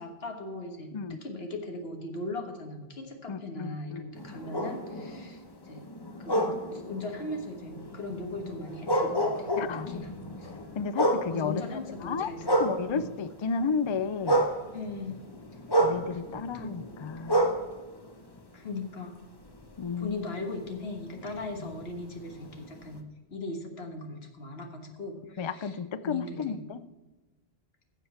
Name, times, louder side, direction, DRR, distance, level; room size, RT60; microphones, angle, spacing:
voice 1, 0.0-5.9 6.2-6.4 6.7-10.1 10.4-10.5 11.3-12.6 12.9-13.1 14.7-15.3 15.7-15.8 16.1-16.2 16.5-16.7 18.5-19.2 20.0-23.0 23.3-25.8 26.0-26.6, left 2 dB, 75° left, 4 dB, 1.7 m, -39 dB
voice 2, 3.3-4.2 4.9-5.1 9.5-10.0 10.8-14.5 15.8-17.5 19.8-20.3 21.6-21.7 25.4-26.8, left 5 dB, 50° left, 14 dB, 0.3 m, -33 dB
sound 1, 4.1-13.4 13.7-19.0 19.4-23.0, right 1 dB, 25° left, 1.0 m, -31 dB
15.5 x 7.2 x 4.3 m, 1.2 s
omnidirectional pair, 1.1 m